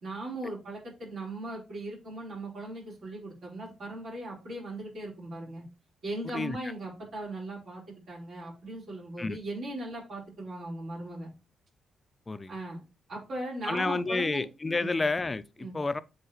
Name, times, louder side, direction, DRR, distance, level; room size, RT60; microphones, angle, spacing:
voice 1, 0.0-5.7 6.0-11.3 12.5-12.8 13.1-14.4 14.8-15.0 15.6-15.8, right 1 dB, 65° right, 4.0 m, -38 dB
voice 2, 13.6-16.0, left 3 dB, 30° left, 0.6 m, -30 dB
7.9 x 3.9 x 3.0 m
hypercardioid pair, 40°, 0 cm